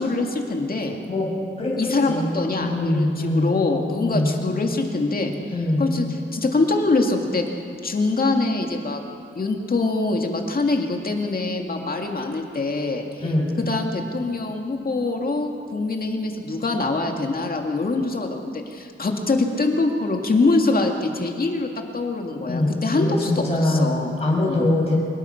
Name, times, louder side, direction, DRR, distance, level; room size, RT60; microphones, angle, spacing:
voice 1, 0.0-1.0 1.8-5.3 5.8-6.1 6.3-7.4 7.8-9.0 9.4-13.0 13.7-21.7 21.9-24.2 24.5-24.7, left 3 dB, 45° left, 2 dB, 2.2 m, -24 dB
voice 2, 1.1-3.5 4.0-4.3 5.5-5.9 13.2-13.5 22.5-23.9 24.2-24.9, left 1 dB, 30° left, -4 dB, 6.1 m, -23 dB
24.5 x 21.0 x 5.9 m, 2.5 s
wide cardioid pair, 130°, 21 cm